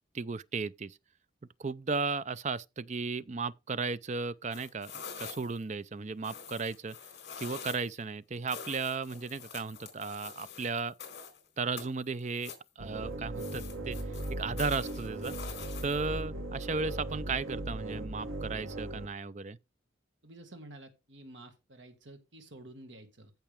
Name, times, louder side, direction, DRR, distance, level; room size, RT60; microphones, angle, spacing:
voice 1, 0.1-1.0 1.6-7.0 7.4-10.9 11.6-14.0 14.4-15.3 15.8-19.6, right 4 dB, 35° right, 0.5 m, -35 dB
sound 1, 4.5-5.6 6.2-8.0 8.5-11.4 11.8-12.7 13.4-16.2, left 6 dB, 55° left, 4.0 m, -46 dB
sound 2, 12.8-19.1, right 1 dB, 90° right, 1.5 m, -38 dB
voice 2, 20.2-23.3, right 1 dB, 65° right, 1.9 m, -50 dB
14.5 x 5.8 x 3.5 m
head